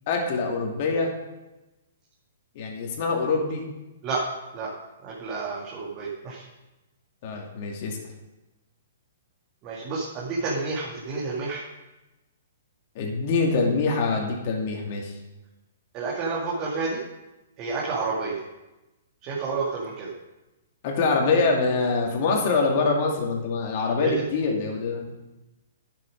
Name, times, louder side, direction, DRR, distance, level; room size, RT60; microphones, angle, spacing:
voice 1, 0.1-1.1 2.6-3.6 7.2-8.0 13.0-15.1 20.8-25.1, left 4 dB, 45° left, 0 dB, 2.4 m, -24 dB
voice 2, 4.0-4.7 5.0-6.5 9.6-11.6 15.9-17.0 17.6-18.4 19.2-20.1 24.0-24.1, right 4 dB, 30° right, -5 dB, 2.1 m, -30 dB
9.7 x 7.4 x 5.2 m, 1.0 s
figure-of-eight pair, 120°, 0 cm